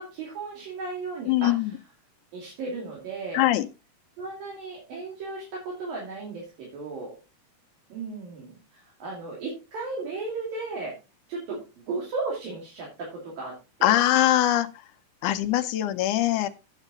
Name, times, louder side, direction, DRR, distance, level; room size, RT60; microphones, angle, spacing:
voice 1, 0.0-1.5 2.3-3.5 4.2-7.1 7.9-10.9 11.3-14.0, right 3 dB, 80° right, -4 dB, 4.6 m, -35 dB
voice 2, 1.3-1.7 3.3-3.7 13.8-14.7 15.2-16.5, left 14 dB, 75° left, 7 dB, 2.0 m, -22 dB
9.0 x 8.4 x 3.8 m, 0.29 s
omnidirectional pair, 4.0 m